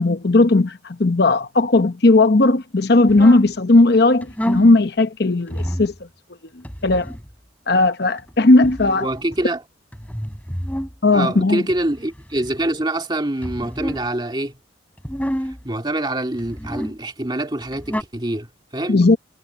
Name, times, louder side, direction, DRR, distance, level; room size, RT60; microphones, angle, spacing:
voice 1, 0.0-5.9 6.8-7.1 7.7-9.1 11.0-11.6 18.9-19.2, left 2 dB, 55° left, 0.9 m, -16 dB
sound 1, 3.1-3.5 4.2-4.7 5.5-6.0 6.6-7.3 8.2-9.4 9.9-10.9 11.7-12.7 13.4-14.1 15.0-15.6 16.3-17.0 17.6-18.0, equal, 10° left, 6.0 m, -29 dB
voice 2, 9.0-9.6 11.1-14.6 15.6-19.0, right 1 dB, 25° right, 2.3 m, -25 dB
head